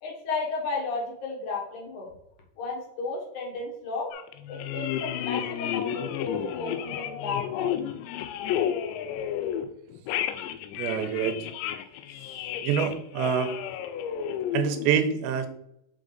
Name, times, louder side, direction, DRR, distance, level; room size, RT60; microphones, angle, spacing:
voice 1, 0.0-2.1 2.6-4.1 4.5-7.7, left 3 dB, 60° left, -1 dB, 2.1 m, -33 dB
sound 1, 4.1-9.7 9.9-14.9, left 10 dB, 85° left, 2.8 m, -32 dB
voice 2, 10.8-11.4 12.6-13.5 14.5-15.5, right 8 dB, 85° right, 7 dB, 2.9 m, -26 dB
5.7 x 5.1 x 3.8 m, 0.77 s
omnidirectional pair, 5.1 m